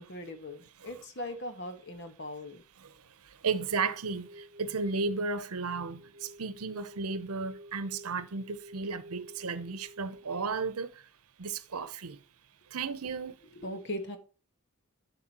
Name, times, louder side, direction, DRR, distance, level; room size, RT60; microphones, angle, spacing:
voice 1, 0.0-2.6 13.5-14.2, left 1 dB, 50° left, 1.4 m, -39 dB
voice 2, 3.4-10.9 11.4-12.2 12.7-13.3, right 4 dB, 85° right, 0.8 m, -34 dB
sound 1, 3.7-10.7, equal, 50° right, 0.8 m, -52 dB
11.5 x 5.2 x 3.0 m
head